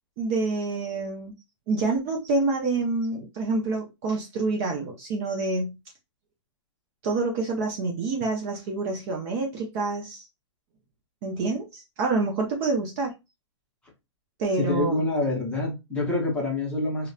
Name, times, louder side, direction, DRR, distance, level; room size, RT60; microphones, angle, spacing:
voice 1, 0.2-1.3 1.7-5.7 7.0-10.3 11.2-13.1 14.4-15.0, right 3 dB, 30° right, 0.5 m, -27 dB
voice 2, 14.6-17.1, left 2 dB, 5° left, 0.7 m, -26 dB
2.8 x 2.1 x 2.3 m
hypercardioid pair, 150°, 16 cm